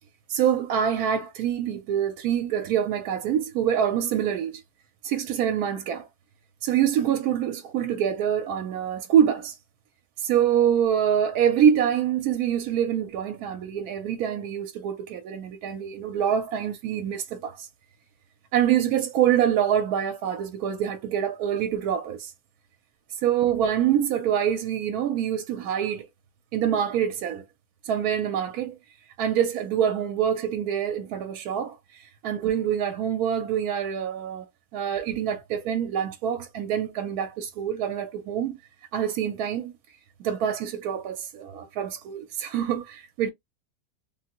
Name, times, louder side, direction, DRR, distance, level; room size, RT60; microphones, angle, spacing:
voice 1, 0.3-4.6 5.0-6.1 6.6-9.6 10.2-17.7 18.5-22.3 23.2-26.1 26.5-27.4 27.8-28.8 29.2-34.5 34.7-38.6 38.9-39.7 40.2-43.3, right 9 dB, 70° right, 1.0 m, -25 dB
3.4 x 2.0 x 2.8 m
omnidirectional pair, 1.8 m